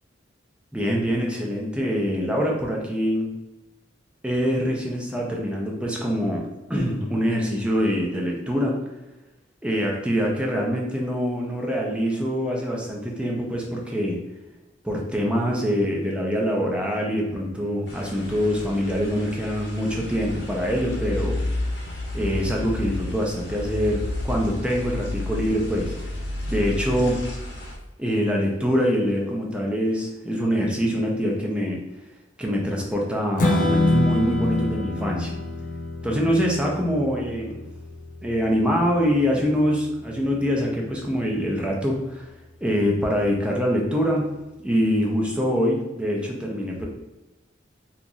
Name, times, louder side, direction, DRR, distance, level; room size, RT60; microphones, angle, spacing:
voice 1, 0.7-3.3 4.2-8.8 9.6-14.2 14.8-21.4 22.1-27.2 28.0-31.8 32.4-35.3 36.0-37.6 38.2-42.3 42.6-44.2 44.6-46.9, equal, 5° right, -2 dB, 0.5 m, -24 dB
sound 1, 17.9-27.8, left 1 dB, 75° left, 0.8 m, -31 dB
Strum, 33.4-39.7, left 1 dB, 45° left, 0.5 m, -26 dB
2.9 x 2.4 x 3.8 m, 1.0 s
head